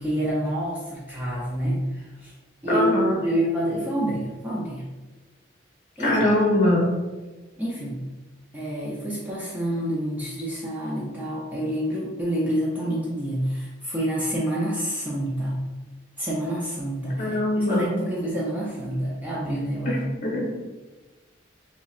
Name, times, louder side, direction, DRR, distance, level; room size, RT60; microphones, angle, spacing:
voice 1, 0.0-2.3 2.6-4.9 6.0-6.2 7.6-8.0 8.5-15.6 16.2-17.3 17.6-20.0, right 1 dB, 10° right, -6 dB, 0.5 m, -27 dB
voice 2, 2.7-3.2 6.0-6.9 17.2-17.9 19.9-20.0 20.2-20.5, left 1 dB, 40° left, -3 dB, 0.9 m, -22 dB
5.6 x 2.2 x 2.4 m, 1.2 s
head